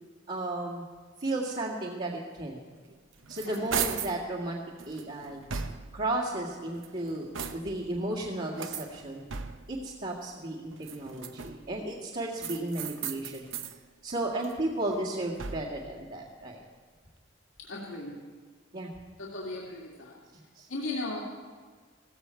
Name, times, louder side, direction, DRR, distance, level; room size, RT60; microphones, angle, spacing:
voice 1, 0.3-0.9 1.2-2.6 3.3-4.6 4.8-5.4 5.9-9.2 9.7-13.4 14.0-16.6 18.7-18.9 20.6-20.7, right 1 dB, 50° right, -8 dB, 2.1 m, -34 dB
sound 1, 2.9-4.2 4.8-6.1 6.7-7.9 8.5-9.8 10.7-11.7 12.4-13.8 14.2-15.9, right 6 dB, 90° right, 0.9 m, -37 dB
voice 2, 17.6-18.2 19.2-20.2 20.7-21.2, left 2 dB, 90° left, -4 dB, 2.5 m, -37 dB
16.5 x 15.5 x 4.6 m, 1.5 s
head